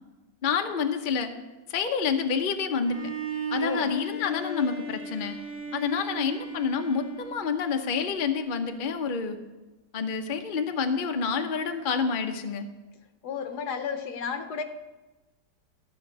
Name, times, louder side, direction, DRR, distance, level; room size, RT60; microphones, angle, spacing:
voice 1, 0.4-1.3 1.7-3.0 3.5-5.4 5.7-9.4 9.9-12.6, left 6 dB, 45° left, 6 dB, 0.7 m, -28 dB
Bowed string instrument, 2.8-7.9, right 1 dB, 5° right, 1.8 m, -35 dB
voice 2, 3.6-3.9 13.2-14.6, left 6 dB, 70° left, 9 dB, 1.4 m, -32 dB
14.0 x 5.1 x 8.5 m, 1.1 s
omnidirectional pair, 1.9 m